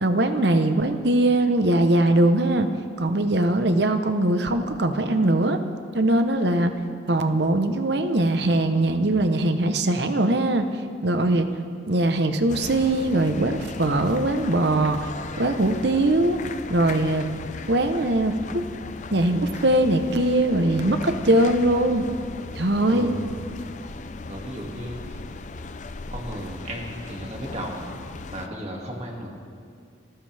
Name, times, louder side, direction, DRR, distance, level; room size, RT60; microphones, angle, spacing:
voice 1, 0.0-2.7 3.0-5.6 5.9-6.8 7.1-10.7 11.0-11.5 11.9-15.1 15.4-16.4 16.7-17.3 17.7-18.6 19.1-22.1 22.6-23.1, right 1 dB, 60° right, 8 dB, 0.9 m, -21 dB
sound 1, 12.5-28.5, left 3 dB, 40° left, 0.5 m, -37 dB
voice 2, 22.9-23.4 24.3-25.2 26.1-27.9 28.3-29.3, equal, 35° right, 0 dB, 2.3 m, -34 dB
26.0 x 15.0 x 3.5 m, 2.2 s
head